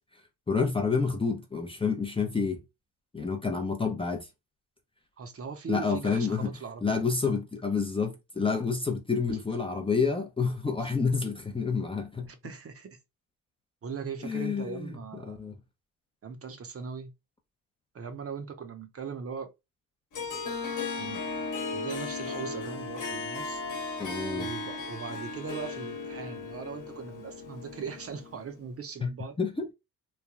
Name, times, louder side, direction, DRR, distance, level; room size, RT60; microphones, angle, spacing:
voice 1, 0.5-2.6 3.1-4.3 5.7-6.5 6.8-12.3 14.2-14.9 15.3-15.5 24.0-24.5 29.0-29.1 29.4-29.7, left 5 dB, 15° left, 0.5 m, -29 dB
voice 2, 5.2-7.1 9.3-9.4 10.8-10.9 12.3-13.0 13.8-15.4 16.2-17.1 17.9-19.5 21.0-21.3 21.7-23.6 24.3-29.4, right 6 dB, 35° right, 0.7 m, -40 dB
Harp, 20.1-28.6, left 3 dB, 55° left, 1.1 m, -36 dB
3.2 x 2.2 x 2.3 m
supercardioid pair, 75°, 38 cm